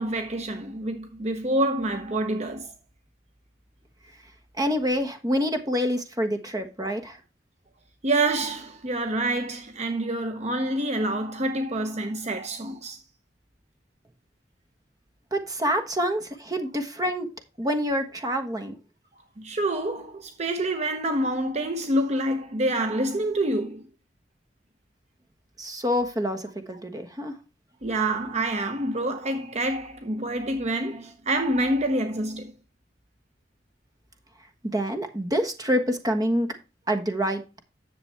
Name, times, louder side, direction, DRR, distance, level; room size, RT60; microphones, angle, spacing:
voice 1, 0.0-2.7 8.0-13.0 19.4-23.8 27.8-32.5, right 1 dB, 40° right, 0.9 m, -27 dB
voice 2, 4.6-7.2 15.3-17.3 17.6-18.8 25.6-27.4 34.7-36.5 36.9-37.6, equal, 20° right, 1.3 m, -27 dB
10.5 x 7.2 x 3.4 m
head